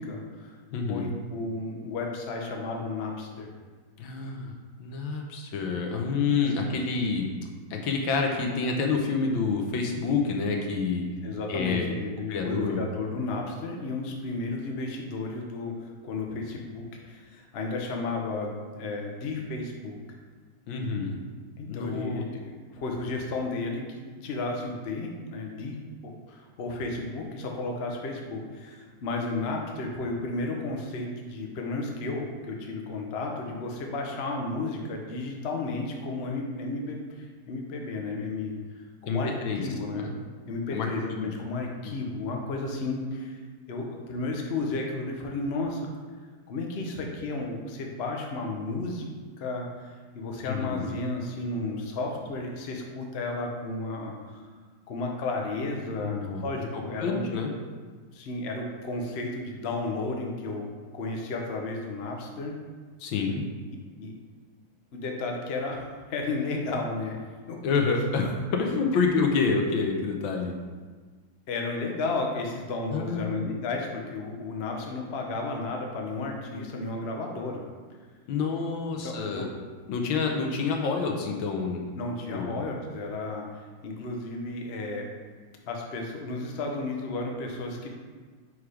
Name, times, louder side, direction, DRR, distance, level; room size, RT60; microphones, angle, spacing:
voice 1, 0.0-0.5 0.9-3.5 11.2-20.0 21.6-25.8 26.0-40.1 40.5-43.4 43.7-45.9 46.5-49.1 49.4-54.4 54.9-56.2 56.4-57.3 58.1-60.6 60.9-62.5 64.0-64.1 64.9-67.2 67.5-67.6 71.5-77.7 79.0-79.5 82.0-83.5 83.8-85.1 85.7-87.9, left 3 dB, 90° left, 1 dB, 0.5 m, -33 dB
voice 2, 0.7-1.1 4.0-7.3 7.7-11.0 11.5-11.9 12.3-12.8 20.7-21.2 21.7-22.2 39.1-39.6 40.0-40.1 40.7-41.3 41.8-41.9 50.4-50.9 56.0-56.4 56.7-57.5 63.0-63.4 67.6-70.5 72.9-73.4 78.3-79.5 79.9-81.8 82.3-82.6, left 4 dB, 70° left, 2 dB, 1.5 m, -28 dB
4.9 x 4.7 x 4.9 m, 1.5 s
omnidirectional pair, 2.3 m